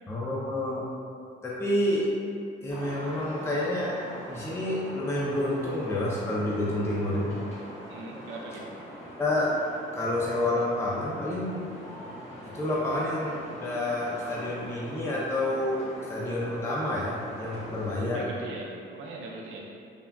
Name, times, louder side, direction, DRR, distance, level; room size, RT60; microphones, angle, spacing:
voice 1, 0.1-0.9 1.4-2.1 2.6-4.0 4.3-7.3 9.2-9.5 9.9-11.7 12.4-18.3, left 1 dB, 15° left, -6 dB, 0.4 m, -29 dB
sound 1, 2.7-17.9, equal, 35° left, 0.9 m, -43 dB
voice 2, 7.9-8.7 17.9-19.6, right 3 dB, 85° right, -2 dB, 0.5 m, -40 dB
3.4 x 2.3 x 2.2 m, 2.4 s
cardioid pair, 90°, 20 cm